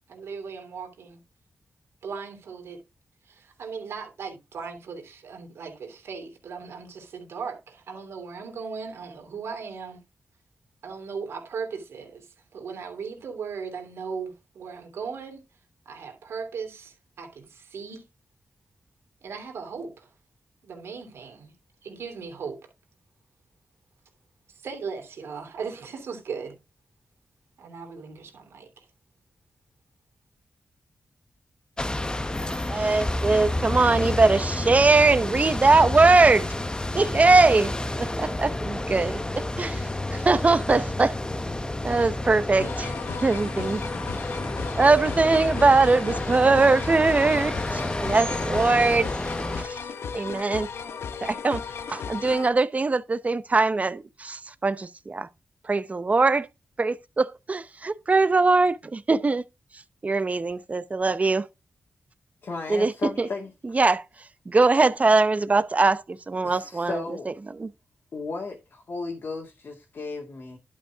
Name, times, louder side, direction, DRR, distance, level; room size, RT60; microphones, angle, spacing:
voice 1, 0.1-1.2 2.0-2.8 3.3-10.0 10.8-15.4 15.8-18.0 19.2-20.1 20.6-21.5 21.8-22.6 24.5-26.6 27.6-28.9, right 5 dB, 90° right, 2.9 m, -37 dB
sound 1, 31.8-49.6, left 1 dB, 20° left, 0.9 m, -30 dB
voice 2, 32.7-36.5 36.9-37.7 38.0-39.8 40.1-41.2 41.8-42.9 43.2-43.8 44.8-49.1 49.6-49.8 50.1-50.7 51.2-51.6 51.9-55.3 55.7-56.5 56.8-59.4 60.0-61.4 62.7-62.9 63.2-63.3 63.7-64.0 64.5-67.0 67.6-67.7, right 3 dB, 35° right, 0.8 m, -21 dB
sound 2, 42.6-52.5, left 6 dB, 80° left, 0.8 m, -35 dB
voice 3, 62.4-63.5 66.4-67.3 68.1-70.6, left 3 dB, 65° left, 2.1 m, -35 dB
11.5 x 5.5 x 3.5 m
cardioid pair, 70°, 4 cm